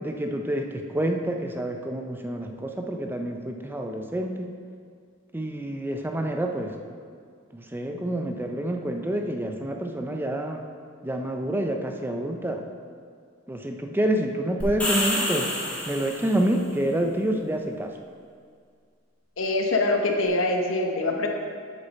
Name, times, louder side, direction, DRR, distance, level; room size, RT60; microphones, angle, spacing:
voice 1, 0.0-4.5 5.3-6.7 7.5-10.6 11.0-12.6 13.5-15.6 15.9-17.9, right 1 dB, 10° right, 3 dB, 0.5 m, -28 dB
sound 1, 14.6-16.5, left 1 dB, 5° left, 1.9 m, -28 dB
voice 2, 19.4-21.3, left 2 dB, 85° left, 2 dB, 1.0 m, -24 dB
8.3 x 6.6 x 4.1 m, 2.1 s
head